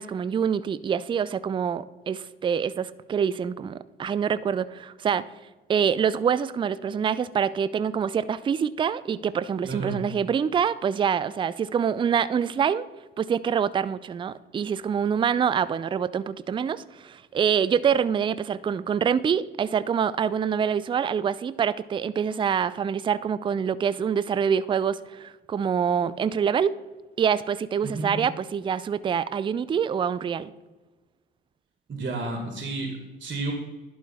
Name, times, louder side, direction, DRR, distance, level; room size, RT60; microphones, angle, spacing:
voice 1, 0.0-5.2 5.7-12.9 13.2-26.8 27.2-30.5, right 7 dB, 20° right, 16 dB, 0.3 m, -25 dB
voice 2, 9.6-10.0 27.8-28.1 31.9-33.5, right 3 dB, 35° right, 3 dB, 1.7 m, -31 dB
11.0 x 4.7 x 4.2 m, 1.2 s
hypercardioid pair, 55°, 29 cm